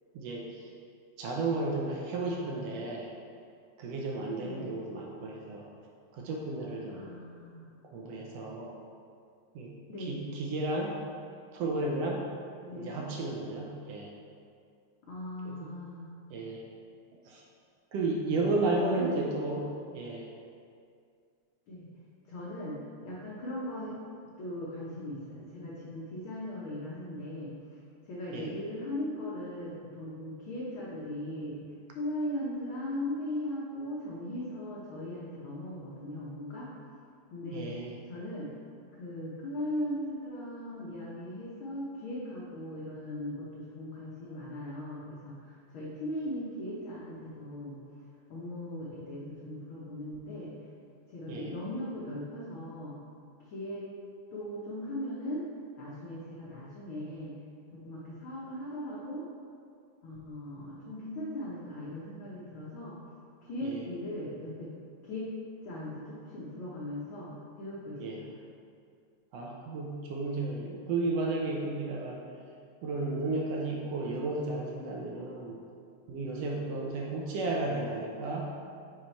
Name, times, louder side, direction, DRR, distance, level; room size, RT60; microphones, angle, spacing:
voice 1, 0.1-0.6 1.2-3.1 3.8-5.7 6.1-7.1 7.9-8.7 9.5-11.0 11.5-12.2 12.8-14.1 15.4-15.8 16.3-16.6 17.2-17.4 17.9-20.3 28.3-28.5 37.5-38.0 51.3-51.5 63.6-63.8 68.0-68.2 69.3-72.3 72.8-75.6 76.1-78.5, right 2 dB, 80° right, -1 dB, 1.4 m, -33 dB
voice 2, 4.4-4.7 6.9-7.6 9.9-10.3 12.7-13.0 15.0-16.1 18.8-19.2 21.7-21.9 22.3-24.0 24.4-27.5 28.1-36.7 37.3-37.7 38.1-38.5 38.9-47.8 48.3-50.5 51.1-53.0 53.5-53.8 54.3-55.5 55.8-57.4 57.7-59.3 60.0-63.0 63.4-64.7 65.0-65.3 65.6-67.3 67.6-68.4, left 1 dB, 75° left, -7 dB, 1.2 m, -38 dB
5.7 x 4.8 x 4.4 m, 2.3 s
omnidirectional pair, 3.6 m